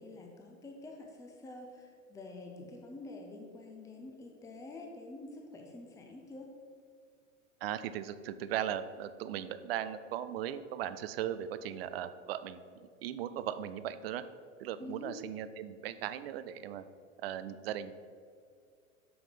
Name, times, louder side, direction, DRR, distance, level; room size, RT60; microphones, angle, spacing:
voice 1, 0.0-6.5 14.8-15.2, left 2 dB, 10° left, 2 dB, 0.8 m, -47 dB
voice 2, 7.6-14.2 14.6-16.8 17.2-17.9, right 10 dB, 50° right, 13 dB, 0.5 m, -38 dB
7.8 x 5.9 x 5.0 m, 2.2 s
figure-of-eight pair, 90°, 40 cm